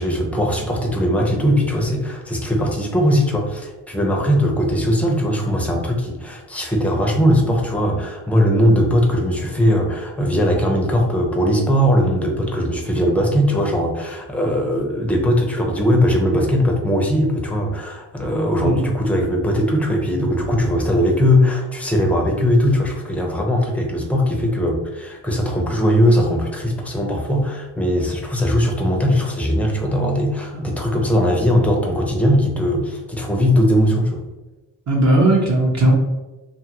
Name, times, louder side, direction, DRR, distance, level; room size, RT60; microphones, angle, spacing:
voice 1, 0.0-34.2, equal, 5° left, 1 dB, 0.5 m, -19 dB
voice 2, 34.9-35.9, right 1 dB, 40° right, -2 dB, 0.6 m, -16 dB
2.7 x 2.4 x 2.8 m, 1.1 s
cardioid pair, 90°, 46 cm